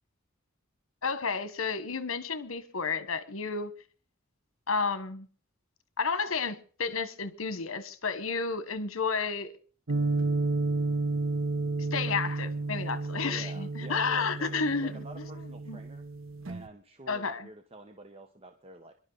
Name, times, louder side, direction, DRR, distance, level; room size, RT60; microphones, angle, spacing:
voice 1, 1.0-3.7 4.7-5.3 6.0-9.5 11.9-15.0 15.7-15.8 17.1-17.5, left 5 dB, 75° left, 1.3 m, -31 dB
sound 1, 9.9-16.7, right 3 dB, 70° right, 1.1 m, -32 dB
voice 2, 13.2-16.1 16.5-18.9, right 1 dB, 30° right, 1.0 m, -49 dB
25.5 x 11.5 x 4.0 m
head